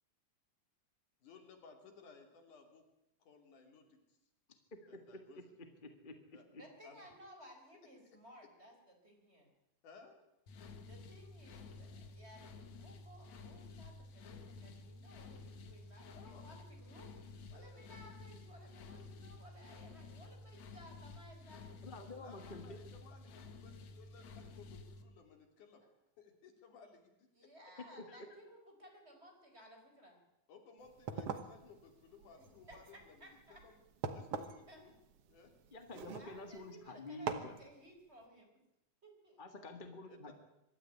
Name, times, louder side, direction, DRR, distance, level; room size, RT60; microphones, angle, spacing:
voice 1, 1.2-2.8 3.2-4.2 4.9-5.5 6.3-6.5 6.8-7.1 8.4-8.5 9.8-10.2 16.1-16.5 17.5-17.9 22.2-25.8 26.2-27.7 30.5-33.8 34.1-34.9 35.3-35.5 35.9-36.2 40.1-40.3, left 5 dB, 85° left, 5 dB, 4.3 m, -60 dB
voice 2, 5.8-6.1 21.8-22.8 28.1-28.2 35.7-37.6 39.4-40.3, left 2 dB, 25° left, 6 dB, 1.1 m, -49 dB
voice 3, 6.5-8.7 9.0-9.5 10.9-17.1 17.5-21.8 27.3-30.2 32.7-32.8 33.2-33.6 34.7-34.8 36.2-38.5 39.0-39.4, equal, 20° right, 3 dB, 4.5 m, -58 dB
sound 1, 10.5-25.0, left 3 dB, 70° left, 2.8 m, -52 dB
sound 2, 30.8-36.7 37.3-37.6, right 6 dB, 60° right, 2.2 m, -44 dB
24.0 x 13.0 x 9.9 m, 0.88 s
omnidirectional pair, 3.5 m